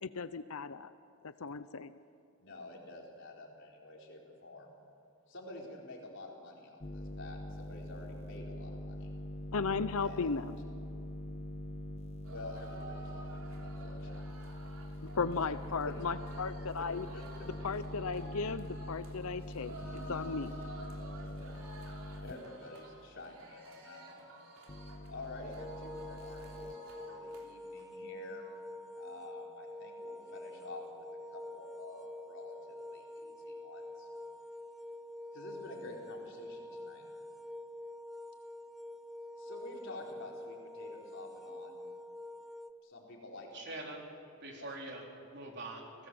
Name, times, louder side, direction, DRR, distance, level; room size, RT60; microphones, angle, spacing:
voice 1, 0.0-0.9 1.2-1.9 9.5-10.6 15.1-17.1 17.6-19.7 20.1-20.5, left 4 dB, 75° left, 13 dB, 0.7 m, -35 dB
voice 2, 2.4-4.7 5.3-9.1 10.0-10.3 12.3-14.2 16.8-16.9 17.1-17.2 19.9-20.2 21.2-21.6 22.2-24.3 25.1-28.4 29.0-31.1 31.3-34.1 35.3-37.0 39.4-41.8 42.8-43.6 44.5-44.9, left 2 dB, 55° left, -1 dB, 4.6 m, -49 dB
sound 1, 6.8-22.3 24.7-26.7, equal, 30° left, 1.0 m, -44 dB
sound 2, 12.2-27.5 27.8-27.9 28.2-28.6, right 2 dB, 70° right, 3.5 m, -52 dB
sound 3, 25.6-42.7, left 1 dB, ahead, 0.6 m, -47 dB
voice 3, 43.5-44.0 44.4-46.1, right 2 dB, 50° right, 0 dB, 4.0 m, -44 dB
29.5 x 18.0 x 7.9 m, 2.5 s
head